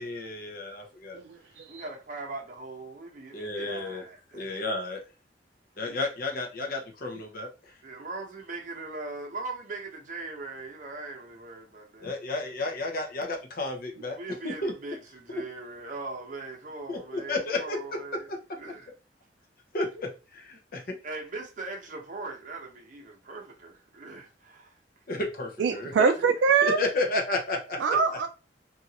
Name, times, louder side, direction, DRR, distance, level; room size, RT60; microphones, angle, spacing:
voice 1, 0.0-1.2 3.3-4.0 4.3-5.0 5.8-7.7 12.0-14.2 14.4-14.7 16.9-17.8 18.3-18.4 19.7-20.8 25.1-25.9 26.6-27.8, left 2 dB, 55° left, 0.7 m, -32 dB
voice 2, 1.3-4.6 7.8-12.1 14.1-18.3 18.6-18.9 21.0-24.7 26.2-26.3 27.9-28.0, right 3 dB, 45° right, 0.8 m, -40 dB
voice 3, 25.6-26.8 27.8-28.3, right 5 dB, 85° right, 0.3 m, -23 dB
2.7 x 2.5 x 2.8 m
head